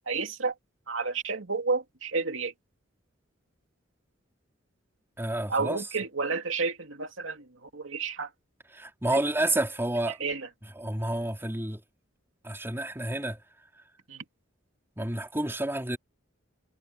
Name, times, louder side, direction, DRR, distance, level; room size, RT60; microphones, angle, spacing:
voice 1, 0.1-0.5 0.9-2.5 5.5-8.3 9.1-9.2 10.1-10.5 14.1-14.2, right 4 dB, 75° right, 2.6 m, -31 dB
voice 2, 5.2-5.8 8.7-10.2 10.8-11.8 12.4-13.4 15.0-16.0, right 1 dB, 10° right, 4.3 m, -29 dB
head